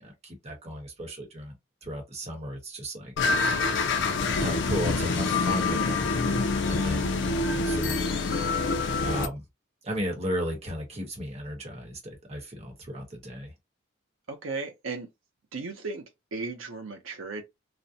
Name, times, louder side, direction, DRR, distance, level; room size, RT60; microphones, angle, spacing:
voice 1, 0.0-1.5 1.8-3.1 3.5-3.7 4.4-7.1 7.5-8.4 9.0-9.4 9.8-13.5, equal, 35° right, 0.9 m, -35 dB
sound 1, 3.2-9.3, left 3 dB, 65° left, 0.4 m, -26 dB
voice 2, 6.8-7.4 14.3-15.1 15.5-16.0 16.3-17.4, right 3 dB, 90° right, 0.6 m, -36 dB
2.4 x 2.0 x 2.7 m
head